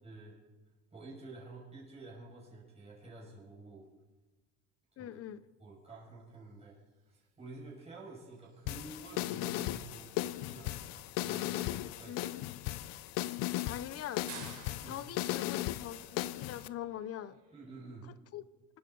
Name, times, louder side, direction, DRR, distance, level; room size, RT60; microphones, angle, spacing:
voice 1, 0.0-0.3 0.9-3.9 5.0-5.1 5.6-6.7 7.1-12.1 14.8-15.0 17.5-18.1, right 3 dB, 20° right, -5 dB, 6.2 m, -50 dB
voice 2, 5.0-5.4 12.0-12.5 13.4-14.3 14.8-17.4 18.0-18.4, left 11 dB, 45° left, 16 dB, 0.7 m, -43 dB
sound 1, 5.8-17.8, right 5 dB, 50° right, 4.7 m, -57 dB
sound 2, 8.7-16.7, left 15 dB, 85° left, 0.7 m, -37 dB
25.0 x 12.5 x 3.9 m, 1.2 s
cardioid pair, 130°, 33 cm